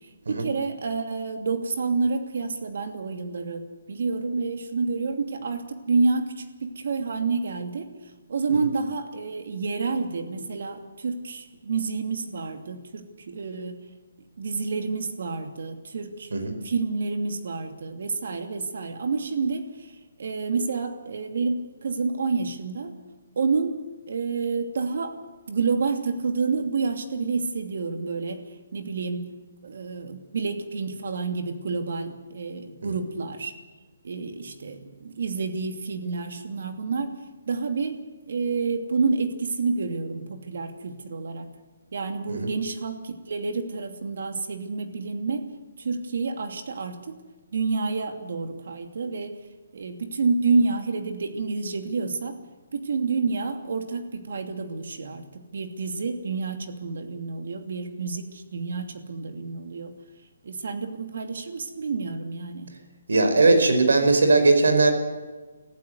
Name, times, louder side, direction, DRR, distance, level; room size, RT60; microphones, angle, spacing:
voice 1, 0.3-3.6 3.9-7.9 8.3-13.8 14.4-16.3 16.6-19.7 20.2-22.9 23.4-23.8 24.1-25.2 25.5-28.4 28.7-29.3 29.6-33.5 34.0-37.1 37.5-38.0 38.3-41.5 41.9-45.5 45.8-47.2 47.5-49.3 49.7-52.4 52.7-59.9 60.4-62.7, right 4 dB, 60° right, 6 dB, 2.8 m, -29 dB
voice 2, 63.1-64.9, right 3 dB, 85° right, 7 dB, 5.1 m, -19 dB
25.0 x 14.5 x 8.2 m, 1.3 s
hypercardioid pair, 170°, 0 cm